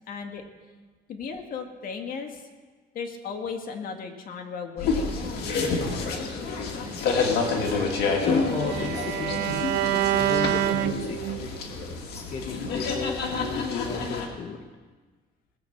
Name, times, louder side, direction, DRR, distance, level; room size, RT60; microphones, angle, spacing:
voice 1, 0.1-0.4 1.1-2.4 2.9-6.2, left 5 dB, 55° left, 5 dB, 1.8 m, -36 dB
sound 1, 4.8-14.3, left 4 dB, 70° left, 1.9 m, -28 dB
Bowed string instrument, 7.4-11.6, right 13 dB, 75° right, 0.5 m, -28 dB
voice 2, 8.2-9.4 10.2-11.5 11.9-14.6, left 4 dB, 40° left, 2 dB, 1.1 m, -34 dB
19.5 x 7.7 x 5.8 m, 1.3 s
cardioid pair, 110°, 17 cm